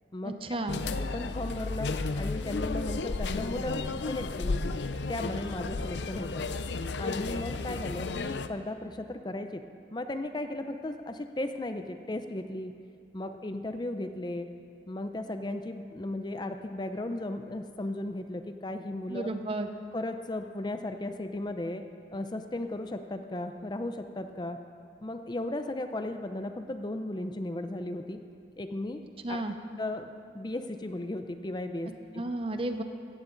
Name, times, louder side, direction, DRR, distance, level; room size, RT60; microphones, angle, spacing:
voice 1, 0.2-0.8 19.1-19.7 29.2-29.5 32.1-32.8, right 2 dB, 30° right, 7 dB, 0.7 m, -32 dB
sound 1, 0.7-8.5, left 3 dB, 75° left, 0.6 m, -33 dB
voice 2, 1.1-3.8 4.1-4.6 5.1-6.4 7.0-9.6 9.9-12.7 13.1-14.5 14.9-19.3 19.9-21.8 22.1-24.6 25.0-28.2 28.6-29.0 29.3-29.4 29.8-30.1 30.3-32.2, left 1 dB, 25° left, 7 dB, 0.5 m, -35 dB
16.5 x 14.5 x 3.9 m, 2.4 s
head